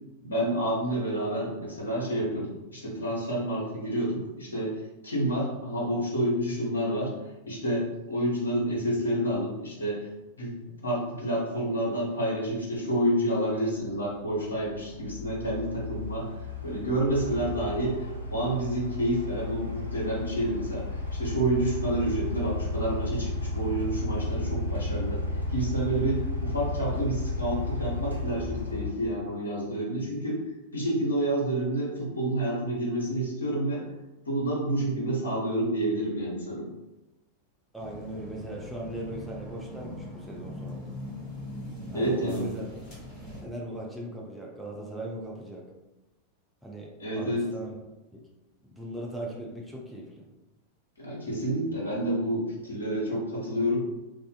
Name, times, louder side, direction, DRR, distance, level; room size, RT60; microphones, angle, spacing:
voice 1, 0.2-7.1 7.5-10.1 10.4-10.5 10.8-16.3 16.6-25.2 25.5-30.4 30.7-33.8 34.2-36.7 41.9-42.6 47.0-47.5 51.0-53.8, right 1 dB, 75° left, -5 dB, 0.9 m, -29 dB
sound 1, 13.8-28.9, left 2 dB, 85° right, 0.5 m, -33 dB
voice 2, 37.7-40.9 41.9-42.6 43.4-45.6 46.6-46.9 47.2-47.7 48.1-48.2 48.6-50.3, right 1 dB, 5° right, -3 dB, 0.5 m, -39 dB
sound 2, 37.8-43.4, left 1 dB, 35° left, 0.9 m, -41 dB
2.4 x 2.4 x 2.3 m, 1.0 s
figure-of-eight pair, 90°, 0 cm